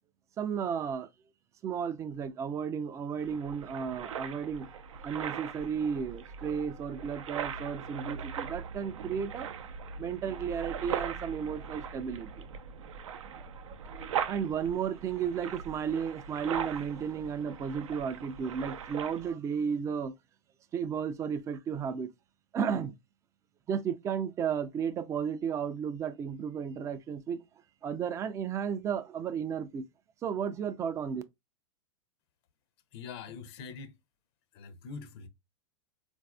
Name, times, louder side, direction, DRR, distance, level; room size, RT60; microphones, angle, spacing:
voice 1, 0.4-1.1 1.6-4.7 5.0-9.5 10.0-12.5 13.4-20.1 20.7-22.1 22.5-23.0 23.7-27.4 27.8-29.9 30.2-31.2, right 7 dB, 20° right, 0.3 m, -33 dB
sound 1, 3.2-19.3, right 7 dB, 80° right, 0.5 m, -40 dB
voice 2, 32.9-34.0 34.5-35.3, left 5 dB, 55° left, 0.6 m, -43 dB
4.0 x 2.5 x 2.2 m
hypercardioid pair, 125°, 16 cm